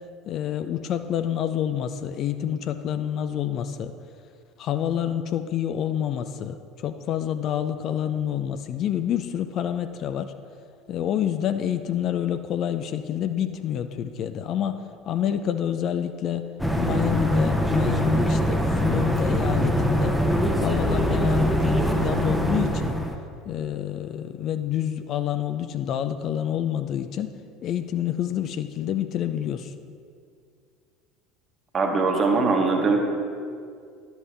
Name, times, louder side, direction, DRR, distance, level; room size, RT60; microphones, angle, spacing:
voice 1, 0.3-3.9 4.6-6.6 6.8-10.3 10.9-16.5 16.8-20.2 20.6-22.9 23.5-27.3 27.6-29.7, left 10 dB, 45° left, 9 dB, 0.4 m, -28 dB
sound 1, 16.6-23.1, equal, ahead, 0.8 m, -23 dB
voice 2, 31.7-33.0, right 4 dB, 30° right, 2 dB, 1.2 m, -21 dB
11.0 x 7.0 x 3.3 m, 2.2 s
figure-of-eight pair, 70°, 0 cm